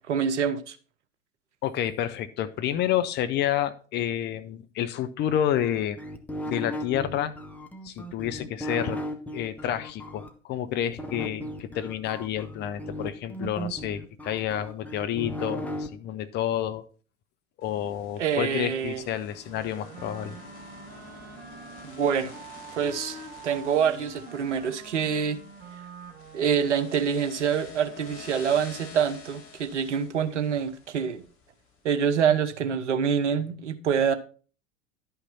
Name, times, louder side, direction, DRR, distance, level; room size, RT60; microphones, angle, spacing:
voice 1, 0.1-0.8 18.2-19.0 21.8-22.3 22.7-23.2 23.4-25.4 26.3-31.2 31.8-34.1, right 7 dB, 65° right, 1.1 m, -26 dB
voice 2, 1.6-6.0 6.4-7.3 7.8-9.0 9.3-16.8 17.6-20.4, left 10 dB, 25° left, 0.7 m, -29 dB
sound 1, 5.6-10.3 11.0-15.9, equal, 5° left, 1.0 m, -36 dB
sound 2, 17.6-31.8, left 4 dB, 55° left, 2.7 m, -48 dB
Wind instrument woodwind instrument, 19.4-27.3, right 4 dB, 25° right, 2.2 m, -45 dB
11.5 x 5.7 x 4.1 m
figure-of-eight pair, 85°, 39 cm